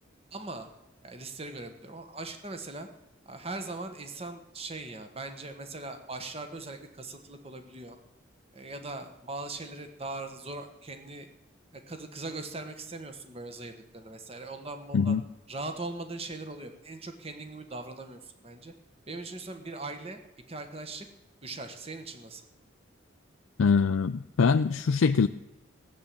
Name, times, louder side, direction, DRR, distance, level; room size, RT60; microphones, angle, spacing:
voice 1, 0.3-0.7 1.0-2.9 3.2-8.0 8.5-11.3 11.7-15.2 15.5-18.7 19.1-20.2 20.5-21.1 21.4-22.4, right 2 dB, 30° right, 7 dB, 1.3 m, -40 dB
voice 2, 23.6-25.3, left 5 dB, 90° left, 9 dB, 0.4 m, -23 dB
16.0 x 7.5 x 8.6 m, 0.94 s
head